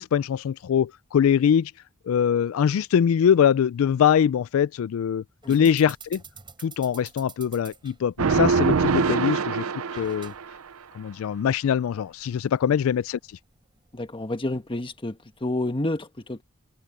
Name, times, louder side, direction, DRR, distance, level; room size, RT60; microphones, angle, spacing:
voice 1, 0.0-1.7 2.1-6.2 6.6-9.6 9.9-10.3 10.9-13.2, left 8 dB, 70° left, 0.3 m, -23 dB
sound 1, 5.4-15.5, right 6 dB, 25° right, 4.6 m, -50 dB
sound 2, 8.2-10.6, right 5 dB, 85° right, 0.6 m, -23 dB
voice 2, 13.9-16.4, left 1 dB, 25° left, 1.3 m, -30 dB
head